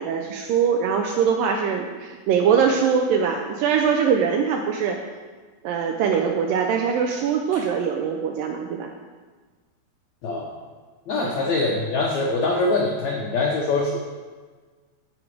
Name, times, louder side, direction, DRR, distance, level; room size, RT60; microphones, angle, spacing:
voice 1, 0.0-5.0 5.6-8.9 11.2-11.3, right 7 dB, 85° right, 3 dB, 2.0 m, -22 dB
voice 2, 11.1-14.0, left 3 dB, 85° left, -1 dB, 1.6 m, -23 dB
14.5 x 5.2 x 4.9 m, 1.4 s
omnidirectional pair, 4.6 m